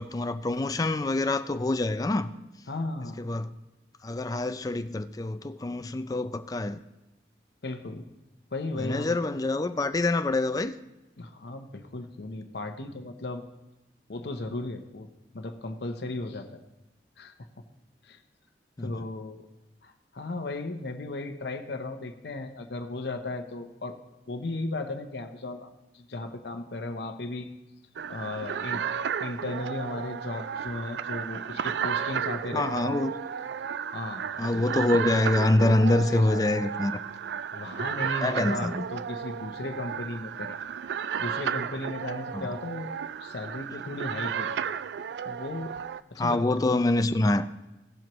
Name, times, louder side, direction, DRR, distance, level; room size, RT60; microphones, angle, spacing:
voice 1, 0.0-2.3 3.2-3.5 4.0-6.8 8.8-10.8 18.8-19.0 32.5-33.2 34.4-37.0 38.2-38.8 42.3-42.5 46.2-47.5, left 2 dB, 20° left, 0.4 m, -26 dB
voice 2, 2.7-3.2 7.6-8.0 8.5-9.2 11.2-13.4 14.1-15.1 15.3-16.5 17.2-17.4 18.0-18.2 18.8-19.4 19.8-24.0 24.3-27.5 28.1-28.8 29.2-32.6 33.9-34.2 34.5-34.7 36.0-36.4 37.5-40.6 41.2-42.9 43.2-44.7 45.2-45.8 46.1-46.6, left 2 dB, 65° left, 0.8 m, -36 dB
sound 1, 27.9-46.0, right 7 dB, 70° right, 0.3 m, -33 dB
17.0 x 7.5 x 3.0 m
head